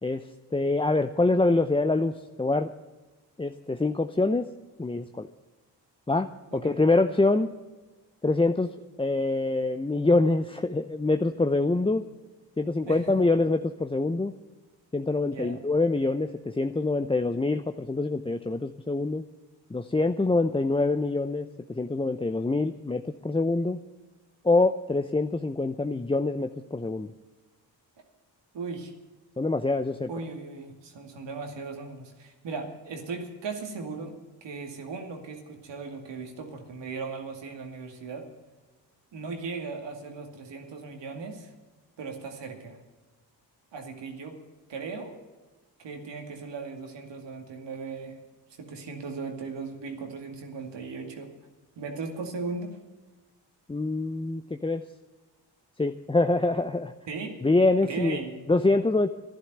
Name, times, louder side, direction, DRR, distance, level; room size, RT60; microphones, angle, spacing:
voice 1, 0.0-2.7 3.4-4.5 4.8-5.3 6.1-7.5 8.2-8.7 9.0-12.0 12.6-14.3 14.9-19.2 19.7-23.8 24.4-27.1 29.4-30.1 53.7-54.8 55.8-56.9 57.4-58.2 58.5-59.1, left 2 dB, 10° left, 8 dB, 0.6 m, -25 dB
voice 2, 6.5-6.8 12.8-13.3 15.2-15.6 28.5-28.9 30.1-34.1 34.4-38.3 39.1-41.5 42.0-42.8 43.7-44.4 44.7-45.2 45.8-48.2 48.6-51.3 51.8-52.8 57.1-57.4 57.8-58.5, right 4 dB, 75° right, 4 dB, 2.4 m, -37 dB
11.5 x 11.0 x 8.0 m, 1.2 s
supercardioid pair, 45°, 44 cm